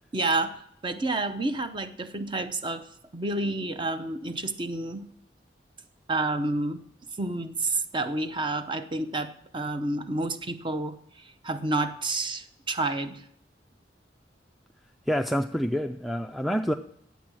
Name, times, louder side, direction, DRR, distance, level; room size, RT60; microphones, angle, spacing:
voice 1, 0.1-2.9 3.1-5.1 6.1-6.8 7.2-13.2, right 2 dB, 30° right, 9 dB, 0.7 m, -29 dB
voice 2, 15.1-16.7, equal, ahead, 7 dB, 0.3 m, -27 dB
10.0 x 8.2 x 6.2 m, 0.70 s
head